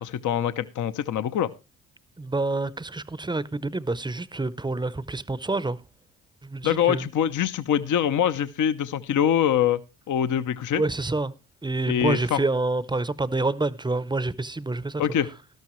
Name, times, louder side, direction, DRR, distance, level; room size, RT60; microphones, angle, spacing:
voice 1, 0.0-1.5 6.6-9.8 10.1-10.8 11.9-12.4 15.0-15.3, left 9 dB, 55° left, 0.8 m, -24 dB
voice 2, 2.2-5.8 6.4-7.1 10.7-11.3 11.6-15.0, right 2 dB, 10° right, 0.7 m, -27 dB
12.5 x 12.0 x 3.1 m
supercardioid pair, 70°, 36 cm